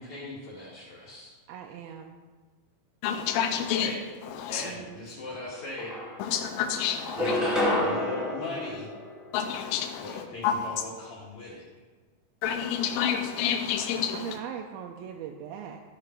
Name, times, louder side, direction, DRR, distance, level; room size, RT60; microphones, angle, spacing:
voice 1, 0.0-1.3 3.7-4.0 4.5-5.9 7.2-8.9 10.0-11.6, left 2 dB, 55° left, -7 dB, 2.9 m, -39 dB
voice 2, 1.5-2.2 4.6-5.0 14.2-15.8, right 9 dB, 85° right, 2 dB, 2.4 m, -40 dB
voice 3, 3.0-3.9 4.2-4.7 6.2-7.4 9.3-10.7 12.4-14.4, left 8 dB, 80° left, 4 dB, 2.4 m, -29 dB
sound 1, 5.3-5.4 5.8-6.5 7.0-9.6, left 1 dB, ahead, 1.1 m, -29 dB
13.0 x 5.1 x 5.8 m, 1.4 s
omnidirectional pair, 4.3 m